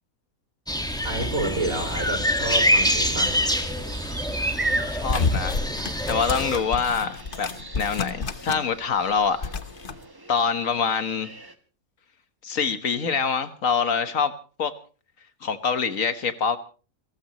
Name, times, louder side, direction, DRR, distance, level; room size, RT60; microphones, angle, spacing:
sound 1, 0.7-6.6, equal, 5° left, 1.6 m, -25 dB
voice 1, 1.0-3.4, right 2 dB, 75° right, 3 dB, 5.8 m, -29 dB
sound 2, 1.5-11.5, right 2 dB, 15° right, 1.2 m, -37 dB
voice 2, 4.9-5.6 6.1-7.5 7.7-9.5 10.3-11.3 12.4-14.3 14.6-14.7 15.4-16.6, left 6 dB, 70° left, 10 dB, 1.7 m, -25 dB
sound 3, 5.1-8.8 9.0-10.0, left 4 dB, 40° left, 1.2 m, -30 dB
29.5 x 14.5 x 3.1 m, 0.37 s
omnidirectional pair, 1.5 m